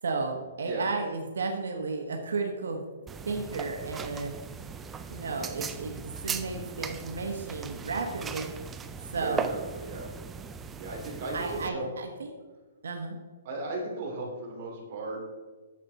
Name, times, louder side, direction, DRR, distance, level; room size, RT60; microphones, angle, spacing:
voice 1, 0.0-2.8 3.2-4.3 5.1-8.5 9.1-9.5 11.3-12.3 12.8-13.2, right 4 dB, 85° right, 3 dB, 1.1 m, -33 dB
sound 1, 3.1-11.7, right 6 dB, 10° right, 0.3 m, -38 dB
voice 2, 9.1-10.1 10.8-11.9 13.4-15.2, right 2 dB, 35° right, -3 dB, 2.7 m, -36 dB
9.8 x 7.0 x 4.0 m, 1.4 s
hypercardioid pair, 170°, 0 cm